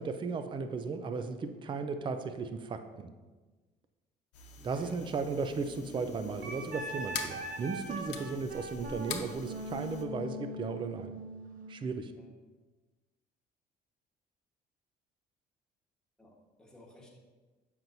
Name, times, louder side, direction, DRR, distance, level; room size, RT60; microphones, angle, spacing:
voice 1, 0.0-3.1 4.6-11.2 11.7-12.1, right 4 dB, 30° right, 8 dB, 0.4 m, -36 dB
sound 1, 4.3-10.0, left 7 dB, 85° left, 0.8 m, -45 dB
voice 2, 4.6-5.1 12.1-12.3 16.2-17.2, left 1 dB, 5° left, -3 dB, 1.3 m, -56 dB
sound 2, 5.5-10.3, equal, 55° left, 1.1 m, -53 dB
Wind instrument woodwind instrument, 6.4-11.8, right 1 dB, 55° right, 0.8 m, -41 dB
7.5 x 5.8 x 2.7 m, 1.3 s
cardioid pair, 110°, 17 cm